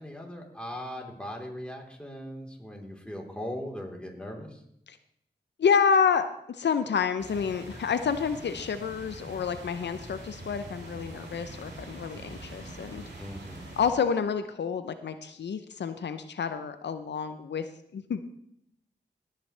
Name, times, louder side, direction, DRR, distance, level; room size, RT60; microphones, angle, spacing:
voice 1, 0.0-4.6 13.2-13.7, left 1 dB, 5° left, 0 dB, 3.7 m, -39 dB
voice 2, 5.6-13.0 13.8-18.2, left 6 dB, 85° left, 10 dB, 0.6 m, -29 dB
sound 1, 7.2-13.9, right 1 dB, 90° right, 3.3 m, -44 dB
17.0 x 9.2 x 3.3 m, 0.73 s
cardioid pair, 40°, 18 cm